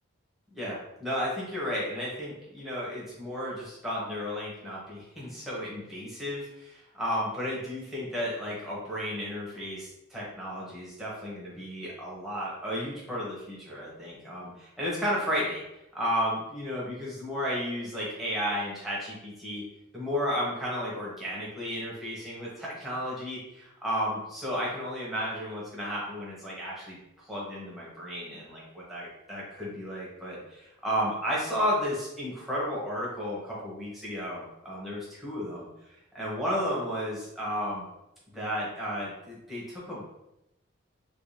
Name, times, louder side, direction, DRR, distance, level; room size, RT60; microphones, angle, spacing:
voice 1, 0.5-15.6 15.9-19.6 19.9-27.0 27.3-35.7 36.1-37.9 38.3-40.1, equal, ahead, -7 dB, 1.1 m, -33 dB
3.0 x 2.8 x 3.3 m, 0.88 s
head